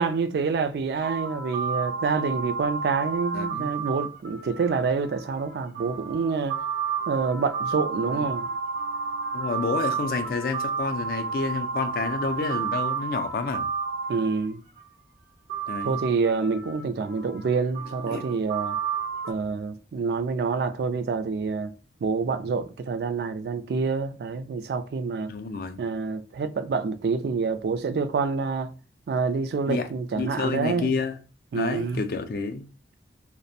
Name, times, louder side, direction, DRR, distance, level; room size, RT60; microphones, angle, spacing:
voice 1, 0.0-6.6 7.1-8.5 14.1-14.6 15.8-18.8 19.3-21.7 22.0-25.3 25.8-28.7 29.1-30.9 31.5-32.0, right 4 dB, 65° right, 0.3 m, -27 dB
sound 1, 1.0-14.8 15.5-19.3, right 5 dB, 90° right, 0.8 m, -31 dB
voice 2, 3.3-3.7 8.1-8.3 9.3-13.7 15.7-16.0 18.1-18.3 25.3-25.8 29.7-31.2 31.5-32.7, left 4 dB, 55° left, 0.3 m, -29 dB
2.5 x 2.0 x 2.6 m
head